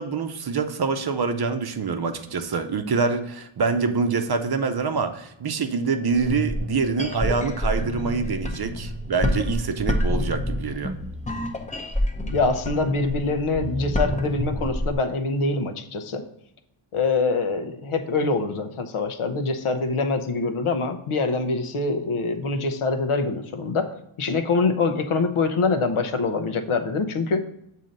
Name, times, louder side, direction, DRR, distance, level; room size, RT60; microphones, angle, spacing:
voice 1, 0.0-10.9, right 5 dB, 50° right, 7 dB, 0.6 m, -25 dB
sound 1, 6.1-14.9, left 1 dB, 15° left, 0.6 m, -28 dB
voice 2, 12.3-16.2 16.9-23.9 24.2-27.4, left 3 dB, 80° left, 6 dB, 0.8 m, -24 dB
7.5 x 2.8 x 5.1 m, 0.80 s
wide cardioid pair, 125°, 50 cm